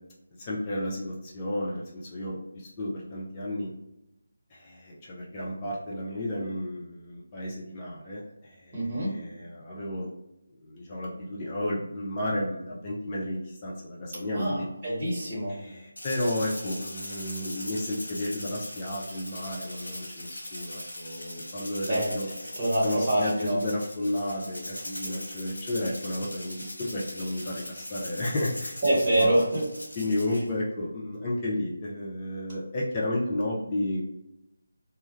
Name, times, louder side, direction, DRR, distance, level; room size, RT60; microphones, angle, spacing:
voice 1, 0.4-3.7 4.5-10.1 10.6-14.7 15.5-22.3 22.8-28.8 29.2-29.3 30.0-34.0, left 1 dB, 20° left, -5 dB, 0.4 m, -32 dB
voice 2, 8.7-9.2 14.3-15.6 21.9-22.1 22.6-23.6 28.8-29.6, right 1 dB, 30° right, -7 dB, 1.1 m, -25 dB
Rattle (instrument), 16.0-30.5, left 1 dB, 65° left, 0.9 m, -40 dB
2.2 x 2.0 x 2.9 m, 0.89 s
figure-of-eight pair, 155°, 0 cm